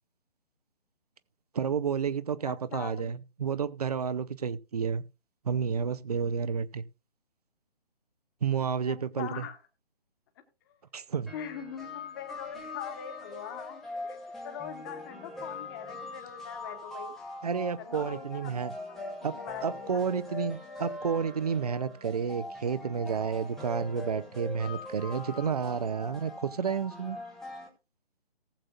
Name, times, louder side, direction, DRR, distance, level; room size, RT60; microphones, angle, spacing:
voice 1, 1.5-5.0 5.4-6.8 8.4-9.4 10.9-11.3 17.4-18.7 19.2-19.3 19.6-27.2, right 6 dB, 40° right, 0.7 m, -31 dB
voice 2, 2.4-3.1 8.8-9.6 10.7-10.8 11.3-14.2 14.4-17.1 17.8-19.0 19.3-20.0, left 9 dB, 20° left, 1.5 m, -42 dB
sound 1, 11.3-27.7, left 2 dB, ahead, 0.8 m, -42 dB
19.0 x 7.6 x 2.5 m
figure-of-eight pair, 145°, 30 cm